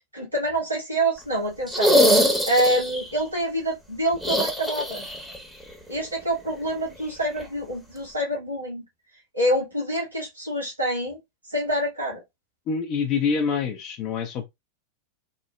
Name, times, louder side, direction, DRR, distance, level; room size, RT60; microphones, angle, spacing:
voice 1, 0.1-2.0 2.5-5.0 5.9-8.8 9.3-11.2 11.5-12.2, right 1 dB, 80° right, 1.3 m, -26 dB
sound 1, 1.7-3.1 4.2-5.4 5.6-5.7 7.4-7.5, equal, ahead, 0.7 m, -22 dB
voice 2, 12.7-14.5, left 6 dB, 35° left, 0.4 m, -26 dB
2.9 x 2.0 x 2.2 m
figure-of-eight pair, 90°, 0 cm